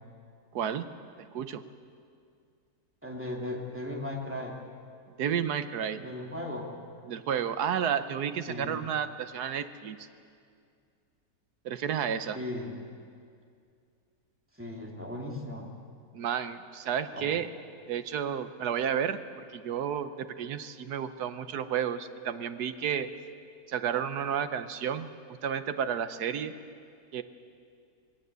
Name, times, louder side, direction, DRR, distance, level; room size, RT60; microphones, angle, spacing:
voice 1, 0.5-0.9 1.2-1.6 5.2-6.0 7.0-10.1 11.6-12.4 16.1-17.5 17.9-19.2 19.5-23.1 23.7-25.1 25.4-26.6 27.1-27.2, right 8 dB, 75° right, 11 dB, 1.4 m, -31 dB
voice 2, 3.0-4.6 5.9-6.7 8.5-8.8 12.3-12.7 14.6-15.7 17.1-17.3, left 1 dB, 10° right, -1 dB, 2.5 m, -37 dB
21.0 x 17.0 x 8.1 m, 2.3 s
omnidirectional pair, 1.7 m